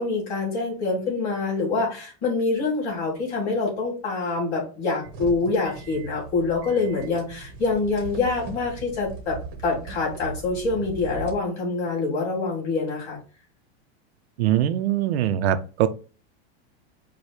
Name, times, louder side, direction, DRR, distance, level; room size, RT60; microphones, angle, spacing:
voice 1, 0.0-9.4 9.6-13.2, left 3 dB, 25° left, 2.1 m, -25 dB
sound 1, 5.0-11.3, right 3 dB, 25° right, 0.8 m, -39 dB
voice 2, 14.4-15.9, right 11 dB, 70° right, 0.5 m, -22 dB
4.9 x 2.2 x 4.3 m
supercardioid pair, 180°, 33 cm